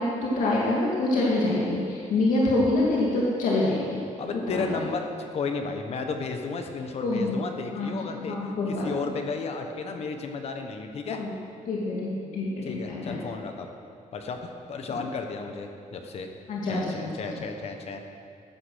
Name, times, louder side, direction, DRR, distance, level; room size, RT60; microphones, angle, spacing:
voice 1, 0.0-4.0 4.5-4.7 7.0-7.3 7.7-9.1 11.1-11.3 11.7-13.1 16.5-17.1, left 2 dB, 80° left, -5 dB, 2.4 m, -26 dB
voice 2, 4.2-5.1 5.3-11.2 12.6-13.7 14.1-16.3 16.6-18.0, left 4 dB, 50° left, 5 dB, 1.3 m, -33 dB
14.0 x 10.0 x 6.4 m, 2.4 s
cardioid pair, 165°, 13 cm